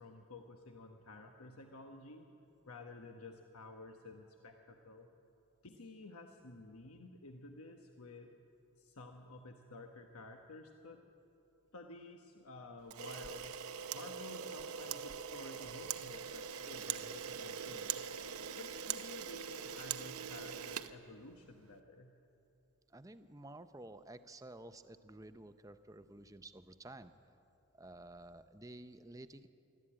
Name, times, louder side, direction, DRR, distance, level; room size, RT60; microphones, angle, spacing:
voice 1, 0.0-2.3 2.6-5.1 5.6-8.3 8.8-11.0 11.7-13.6 13.9-18.1 18.6-22.1, left 2 dB, 85° left, 4 dB, 1.1 m, -52 dB
Camera, 12.9-21.6, right 8 dB, 90° right, 0.8 m, -42 dB
voice 2, 22.9-27.2 27.7-29.5, right 2 dB, 15° right, 11 dB, 0.6 m, -52 dB
23.0 x 13.5 x 8.8 m, 2.8 s
head